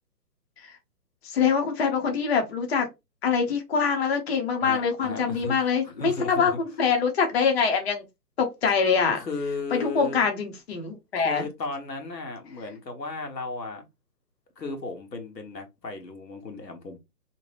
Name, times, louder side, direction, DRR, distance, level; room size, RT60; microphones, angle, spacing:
voice 1, 1.2-2.9 3.2-8.0 8.4-9.2 9.7-11.4, left 6 dB, 40° left, 0.7 m, -24 dB
voice 2, 4.6-6.6 9.2-10.2 11.2-13.9 14.6-17.0, left 3 dB, 90° left, 1.1 m, -35 dB
2.8 x 2.2 x 3.2 m
hypercardioid pair, 150°, 49 cm